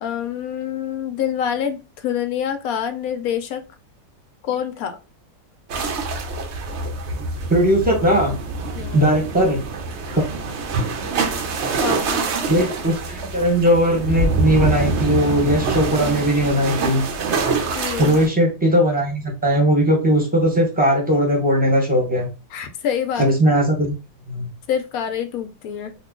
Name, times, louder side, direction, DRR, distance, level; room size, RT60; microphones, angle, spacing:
voice 1, 0.0-3.6 4.4-5.0 8.7-9.1 10.1-10.3 11.8-12.2 17.8-18.2 22.5-23.3 24.7-25.9, left 9 dB, 70° left, 8 dB, 0.9 m, -26 dB
sound 1, 5.7-18.3, right 3 dB, 65° right, 0.7 m, -25 dB
voice 2, 7.5-8.3 8.9-9.6 10.4-10.5 12.5-17.0 18.0-22.3 23.2-23.9 24.3-24.5, equal, 5° right, -1 dB, 0.8 m, -18 dB
3.0 x 2.3 x 3.6 m, 0.29 s
omnidirectional pair, 1.7 m